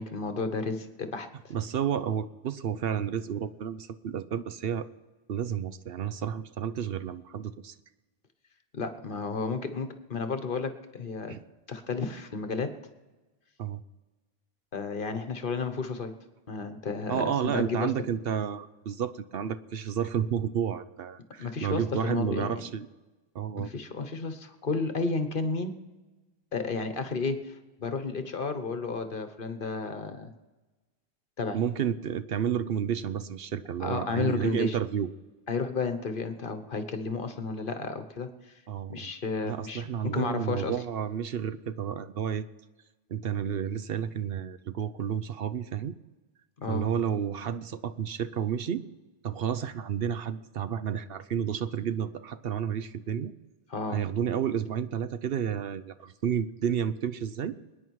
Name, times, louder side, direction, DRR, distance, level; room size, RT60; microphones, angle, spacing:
voice 1, 0.0-1.5 8.7-11.4 11.7-12.7 14.7-16.1 16.5-17.9 21.4-22.6 23.6-25.8 26.5-30.3 31.4-31.6 33.8-34.8 35.5-38.6 38.9-40.8 46.6-46.8 53.7-54.0, left 4 dB, 55° left, 8 dB, 1.3 m, -32 dB
voice 2, 1.5-4.9 5.3-7.7 11.3-11.4 13.6-13.8 17.1-22.9 23.3-23.7 31.5-35.1 38.7-39.1 39.4-42.5 43.1-46.0 46.7-48.8 49.2-53.3 53.9-57.6, right 8 dB, 65° right, 12 dB, 0.9 m, -31 dB
27.0 x 9.7 x 4.7 m, 1.2 s
omnidirectional pair, 1.1 m